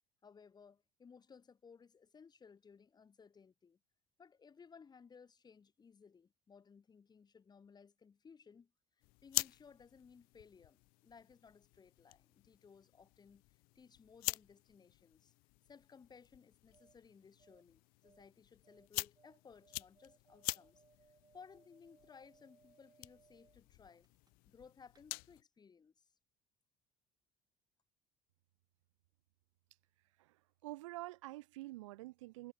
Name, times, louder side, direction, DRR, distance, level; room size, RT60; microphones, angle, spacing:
voice 1, 0.2-3.8 4.2-8.7 9.2-15.3 15.7-20.8 21.3-24.1 24.5-26.1, left 6 dB, 25° left, 1.0 m, -60 dB
sound 1, 9.0-25.4, left 27 dB, 70° left, 0.5 m, -47 dB
sound 2, 16.4-24.6 24.9-25.0, right 5 dB, 25° right, 1.5 m, -70 dB
voice 2, 30.2-32.5, right 19 dB, 90° right, 0.5 m, -48 dB
hypercardioid pair, 80°, 16 cm